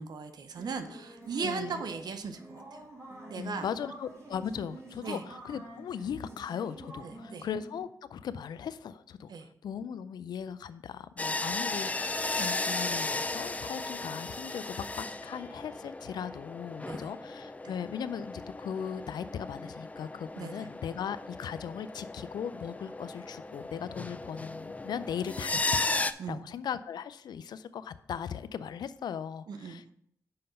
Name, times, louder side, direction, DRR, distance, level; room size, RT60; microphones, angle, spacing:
voice 1, 0.0-2.8 3.3-3.7 5.0-5.2 7.0-7.5 9.3-9.5 16.9-17.1 20.4-20.7 26.2-26.4 29.5-29.8, right 5 dB, 70° right, 8 dB, 0.7 m, -38 dB
sound 1, 0.6-7.8, right 1 dB, 45° right, 3.3 m, -48 dB
voice 2, 1.4-1.8 3.4-9.3 9.6-29.9, left 8 dB, 80° left, 14 dB, 0.4 m, -38 dB
sound 2, 11.2-26.1, left 2 dB, 20° left, 0.4 m, -35 dB
5.7 x 5.3 x 5.4 m, 0.71 s
cardioid pair, 50°, 7 cm